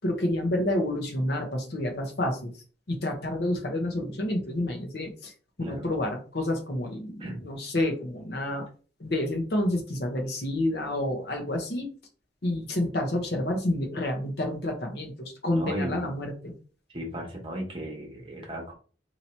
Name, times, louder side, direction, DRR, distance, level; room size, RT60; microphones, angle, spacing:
voice 1, 0.0-2.5 2.9-5.3 5.6-8.6 9.0-11.9 12.4-16.5, left 1 dB, 60° left, 3 dB, 0.9 m, -29 dB
voice 2, 5.6-5.9 7.2-7.4 15.5-16.1 16.9-18.7, equal, 30° right, 0 dB, 1.1 m, -35 dB
2.9 x 2.8 x 4.3 m, 0.39 s
head